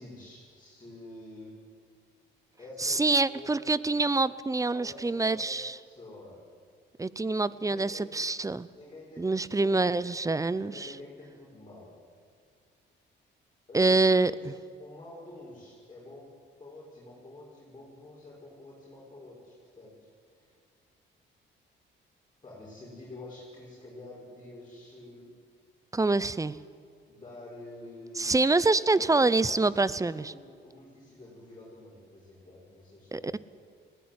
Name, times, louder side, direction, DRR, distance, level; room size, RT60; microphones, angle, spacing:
voice 1, 0.0-1.5 2.6-3.6 4.7-6.4 7.2-8.2 8.7-9.9 10.4-11.9 13.7-14.5 14.8-16.3 16.6-20.5 22.4-25.3 27.1-28.3 28.9-33.3, left 2 dB, 25° left, -6 dB, 6.4 m, -48 dB
voice 2, 2.8-5.8 7.0-8.7 9.2-10.9 13.7-14.3 25.9-26.5 28.2-30.3 33.1-33.4, right 3 dB, 15° right, 18 dB, 0.7 m, -26 dB
20.0 x 16.5 x 9.7 m, 2.2 s
cardioid pair, 90°, 20 cm